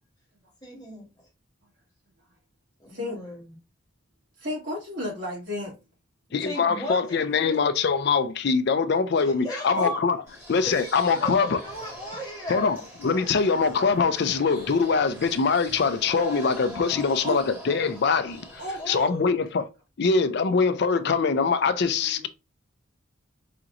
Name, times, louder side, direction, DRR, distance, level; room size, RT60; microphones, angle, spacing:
voice 1, 0.6-1.0 2.8-3.6 6.4-7.6 9.2-10.0 10.6-12.9 18.8-19.3, equal, 20° left, 1.6 m, -36 dB
voice 2, 4.4-5.7 9.7-9.9 17.2-17.4 18.6-18.8 22.0-22.3, equal, 60° right, 2.4 m, -32 dB
voice 3, 6.3-10.2 10.5-11.6 12.5-18.6 18.9-19.6 20.0-22.3, left 5 dB, 55° left, 0.4 m, -23 dB
sound 1, 10.3-19.0, equal, 10° right, 1.7 m, -43 dB
5.0 x 2.9 x 2.4 m
head